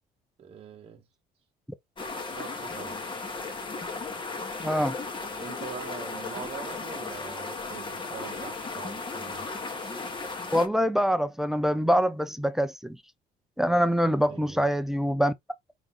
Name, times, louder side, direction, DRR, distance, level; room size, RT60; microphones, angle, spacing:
voice 1, 0.4-1.0 2.3-3.0 5.4-9.5 14.3-14.6, right 6 dB, 35° right, 0.9 m, -43 dB
sound 1, 2.0-10.7, left 3 dB, 30° left, 1.3 m, -36 dB
voice 2, 4.6-5.0 10.5-13.0 13.6-15.3, equal, ahead, 0.6 m, -24 dB
5.0 x 2.7 x 3.8 m
cardioid pair, 110°, 17 cm